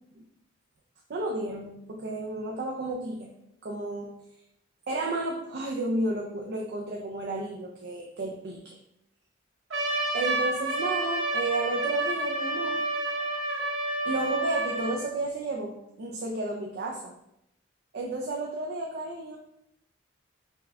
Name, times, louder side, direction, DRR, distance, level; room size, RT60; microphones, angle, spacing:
voice 1, 1.1-3.3 3.6-4.1 4.9-8.8 10.1-12.9 14.1-17.1 17.9-19.4, right 2 dB, 55° right, 0 dB, 0.4 m, -32 dB
Trumpet, 9.7-15.0, right 1 dB, 80° right, 1.3 m, -29 dB
5.4 x 2.2 x 3.5 m, 0.81 s
head